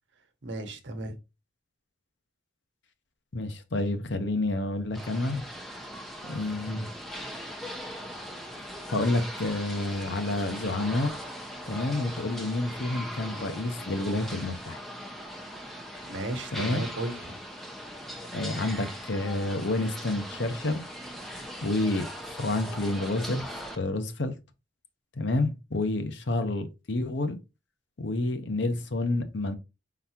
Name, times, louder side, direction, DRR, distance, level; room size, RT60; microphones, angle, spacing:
voice 1, 0.4-1.2 16.1-17.4, right 1 dB, 70° right, 1.0 m, -35 dB
voice 2, 3.3-5.4 6.3-6.9 8.9-11.2 11.7-14.8 16.5-16.8 18.3-20.8 21.6-22.1 22.4-23.4 23.8-24.3 25.2-27.4 28.0-29.5, left 2 dB, 65° left, 0.8 m, -29 dB
sound 1, 4.9-23.8, equal, ahead, 0.6 m, -40 dB
4.8 x 3.9 x 2.8 m
head